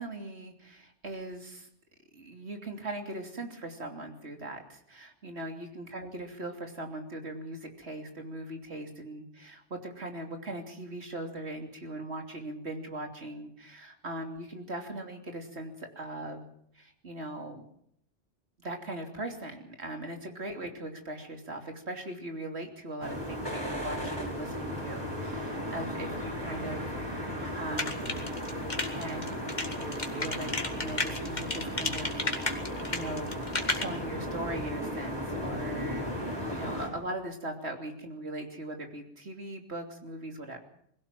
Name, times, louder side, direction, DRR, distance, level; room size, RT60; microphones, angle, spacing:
voice 1, 0.0-1.7 2.1-16.5 16.7-17.7 18.6-28.2 28.9-29.5 29.8-33.4 33.7-40.6, right 1 dB, 65° right, 4 dB, 3.3 m, -40 dB
sound 1, 23.0-36.9, equal, 20° right, 5.7 m, -36 dB
sound 2, 27.8-33.8, left 2 dB, 40° left, 2.1 m, -32 dB
21.5 x 16.5 x 7.6 m, 0.68 s
omnidirectional pair, 1.2 m